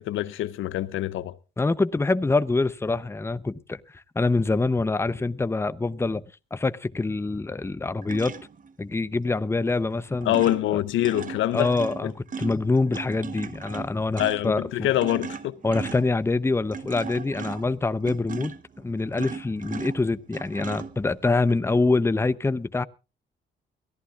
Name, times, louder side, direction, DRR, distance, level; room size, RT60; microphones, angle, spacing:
voice 1, 0.0-1.4 10.3-11.7 12.0-12.1 14.2-15.6, left 14 dB, 80° left, 0.7 m, -25 dB
voice 2, 1.6-6.2 6.5-8.4 8.8-10.4 10.7-10.8 11.5-14.9 15.6-22.8, left 3 dB, 15° left, 0.7 m, -25 dB
sound 1, 8.0-8.7 9.7-9.9 10.2-21.5, right 5 dB, 40° right, 1.0 m, -38 dB
22.5 x 14.5 x 2.4 m
cardioid pair, 90°, 20 cm